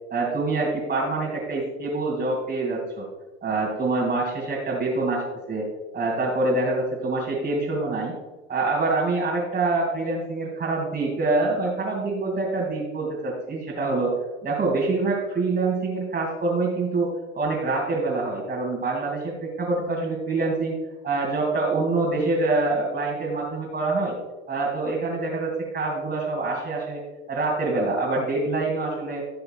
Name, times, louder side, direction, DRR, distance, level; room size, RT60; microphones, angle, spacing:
voice 1, 0.1-3.1 3.4-5.7 5.9-8.1 8.5-14.1 14.4-20.7 21.0-24.2 24.5-27.0 27.3-29.2, right 3 dB, 25° right, -4 dB, 2.7 m, -25 dB
16.0 x 6.7 x 2.4 m, 1.2 s
hypercardioid pair, 75°, 35 cm